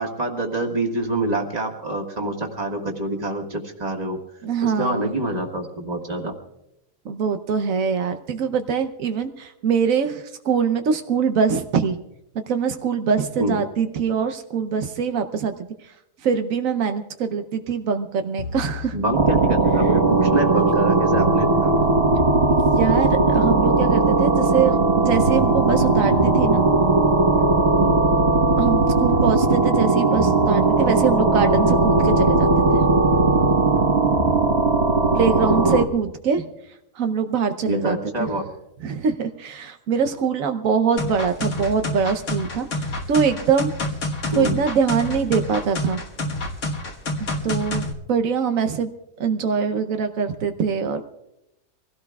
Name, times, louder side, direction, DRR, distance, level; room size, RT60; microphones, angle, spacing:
voice 1, 0.0-4.2 4.6-6.3 13.4-13.6 18.9-21.7 27.8-28.0 37.7-38.4 44.3-44.6, right 2 dB, 30° right, 1 dB, 1.8 m, -26 dB
voice 2, 4.4-5.1 7.1-12.0 12.5-15.5 16.2-18.9 22.5-26.6 28.6-32.9 35.1-36.4 37.0-38.3 38.8-42.7 43.1-43.7 44.4-46.0 47.4-48.9 49.2-51.1, right 6 dB, 85° right, 8 dB, 1.2 m, -23 dB
sound 1, 18.4-20.3 21.1-24.2 25.1-28.2 29.1-32.2 33.1-34.5, left 4 dB, 40° left, 1.2 m, -33 dB
sound 2, 19.1-35.8, right 3 dB, 55° right, 1.5 m, -18 dB
sound 3, 41.0-47.9, left 1 dB, 65° left, 1.8 m, -28 dB
25.0 x 16.5 x 2.3 m, 0.85 s
omnidirectional pair, 1.4 m